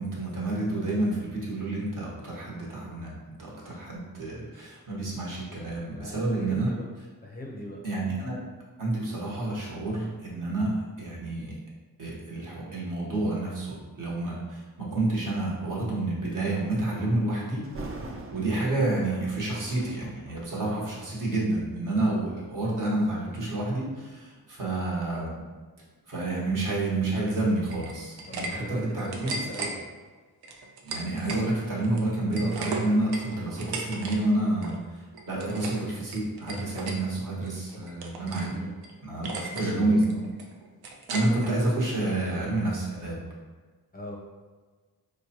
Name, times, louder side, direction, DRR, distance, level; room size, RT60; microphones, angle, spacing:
voice 1, 0.0-6.7 7.8-8.4 8.8-11.5 12.0-17.6 18.3-25.4 26.1-29.3 30.8-34.8 35.3-38.6 39.0-40.1 41.1-43.2, right 2 dB, 55° right, -5 dB, 1.1 m, -29 dB
voice 2, 5.9-6.9 7.2-7.8 28.3-29.8 35.4-35.6 37.7-37.8 38.5-38.8 39.2-40.3 43.9-44.2, equal, 25° left, -2 dB, 0.5 m, -40 dB
Thunder, 17.6-22.6 23.3-23.5 24.1-26.9 27.3-27.4, right 2 dB, 40° right, 0.4 m, -45 dB
sound 1, 27.7-28.5 28.8-29.7 30.4-31.4 31.8-34.2 34.4-34.8 35.1-35.8 36.1-37.0 37.4-38.5 38.8-38.9 39.2-39.7 40.0-41.5, right 3 dB, 90° right, 0.6 m, -36 dB
4.5 x 2.1 x 2.8 m, 1.4 s
wide cardioid pair, 110°, 37 cm